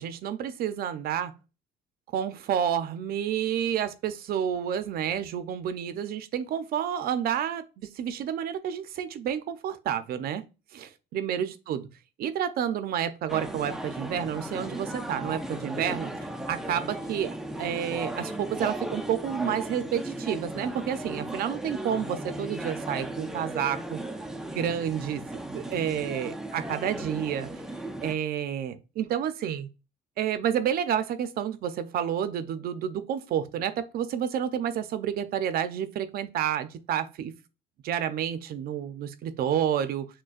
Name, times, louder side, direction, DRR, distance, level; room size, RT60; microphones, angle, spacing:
voice 1, 0.0-1.3 2.1-10.4 10.7-11.9 12.2-16.1 16.5-24.0 24.5-27.5 28.0-29.7 30.2-37.3 37.8-40.1, right 9 dB, 65° right, 0.5 m, -30 dB
sound 1, 13.3-28.1, right 1 dB, 5° right, 0.4 m, -36 dB
6.3 x 2.2 x 2.4 m
cardioid pair, 110°, 17 cm